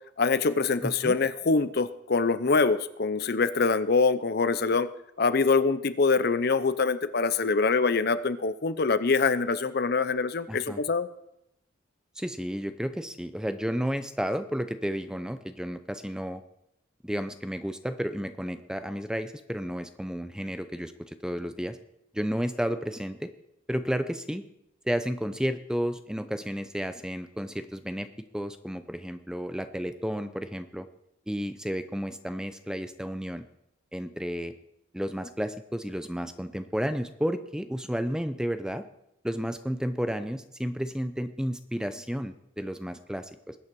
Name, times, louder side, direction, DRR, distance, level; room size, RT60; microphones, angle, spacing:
voice 1, 0.2-4.9 5.2-11.1, left 4 dB, 50° left, 14 dB, 0.6 m, -24 dB
voice 2, 0.8-1.2 10.5-10.8 12.2-16.4 17.0-21.8 22.1-23.3 23.7-24.5 24.8-30.9 31.3-33.4 33.9-34.5 34.9-38.9 39.2-43.6, equal, 5° right, 10 dB, 0.6 m, -32 dB
20.5 x 8.7 x 4.7 m, 0.81 s
head